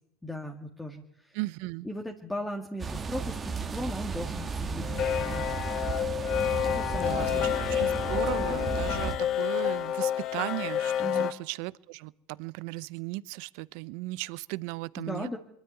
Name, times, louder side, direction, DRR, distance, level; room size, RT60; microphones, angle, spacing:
voice 1, 0.2-1.4 1.8-5.5 6.6-7.5 11.0-11.3 15.0-15.4, left 1 dB, 5° left, 2 dB, 2.1 m, -37 dB
voice 2, 1.3-1.9 7.1-15.3, right 22 dB, 65° right, 19 dB, 0.7 m, -37 dB
sound 1, 2.8-9.2, right 5 dB, 20° right, 1.7 m, -34 dB
sound 2, 4.8-11.3, left 10 dB, 45° left, 1.2 m, -29 dB
sound 3, 5.9-10.6, left 11 dB, 75° left, 1.1 m, -46 dB
22.5 x 12.5 x 9.4 m, 0.79 s
hypercardioid pair, 105°, 0 cm